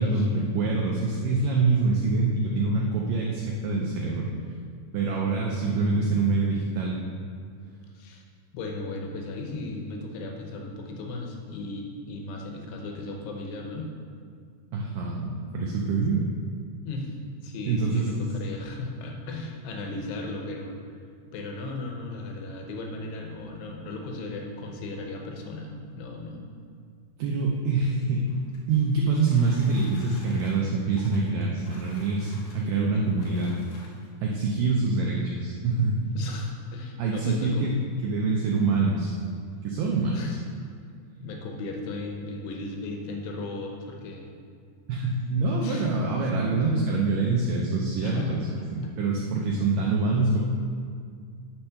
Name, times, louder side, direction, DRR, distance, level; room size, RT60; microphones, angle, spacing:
voice 1, 0.0-4.3 4.9-7.0 14.7-16.3 17.7-18.3 27.2-28.3 28.7-33.6 34.2-36.0 37.0-39.1 39.6-40.4 44.9-50.4, right 3 dB, 80° right, -2 dB, 1.9 m, -25 dB
voice 2, 8.5-13.9 16.8-17.1 17.4-20.8 21.3-26.4 36.1-38.0 40.1-40.4 41.2-44.3 45.6-45.9 46.2-46.3 48.0-48.4 48.8-48.9, left 2 dB, 90° left, 1 dB, 3.1 m, -36 dB
sound 1, 28.1-34.3 35.1-35.2 35.6-35.7 36.1-36.4, left 2 dB, 65° left, 2.0 m, -52 dB
10.0 x 4.4 x 5.7 m, 2.1 s
omnidirectional pair, 4.7 m